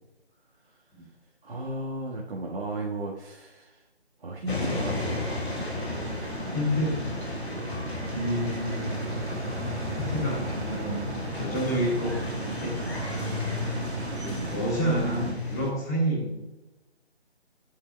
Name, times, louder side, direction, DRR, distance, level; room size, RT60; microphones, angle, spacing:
voice 1, 1.4-3.8 4.2-5.2 5.4-5.7 14.3-14.5, right 2 dB, 55° right, -5 dB, 1.7 m, -35 dB
sound 1, 4.5-15.7, left 3 dB, 65° left, 2.6 m, -34 dB
sound 2, 4.7-15.3, right 2 dB, 85° right, 1.5 m, -35 dB
voice 2, 6.5-7.0 8.1-8.8 10.0-12.8 14.2-16.3, equal, 15° left, -5 dB, 2.5 m, -29 dB
11.5 x 8.5 x 2.3 m, 1.0 s
figure-of-eight pair, 170°, 33 cm